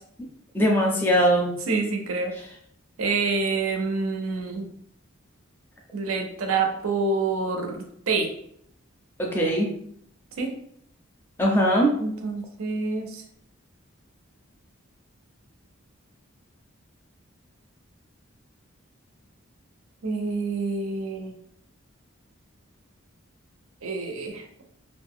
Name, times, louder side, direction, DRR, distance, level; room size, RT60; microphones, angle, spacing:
voice 1, 0.5-1.5 2.3-2.4 9.2-9.7 11.4-11.9, equal, 10° left, -1 dB, 0.4 m, -21 dB
voice 2, 1.7-2.3 3.0-4.7 5.9-8.3 10.4-10.5 12.0-13.2 20.0-21.3 23.8-24.6, right 4 dB, 90° right, 4 dB, 0.6 m, -27 dB
2.5 x 2.1 x 3.5 m, 0.68 s
head